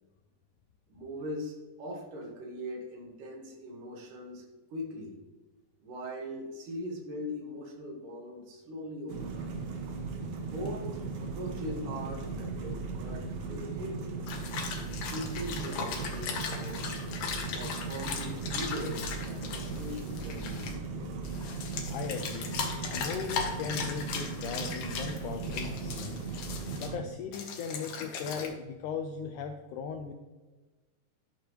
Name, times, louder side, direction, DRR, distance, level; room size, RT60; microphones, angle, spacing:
voice 1, 0.9-4.4 4.7-5.2 5.8-9.5 10.5-14.1 14.8-17.0 17.5-20.8, equal, 65° right, 1 dB, 2.9 m, -40 dB
sound 1, 9.1-27.0, right 4 dB, 85° right, 3.1 m, -37 dB
sound 2, 14.3-20.7 21.2-26.9 27.3-28.5, left 5 dB, 65° left, 2.2 m, -38 dB
voice 2, 21.9-22.5 22.9-26.2 26.8-30.1, left 6 dB, 90° left, 6 dB, 1.8 m, -38 dB
11.5 x 6.5 x 3.1 m, 1.2 s
omnidirectional pair, 4.1 m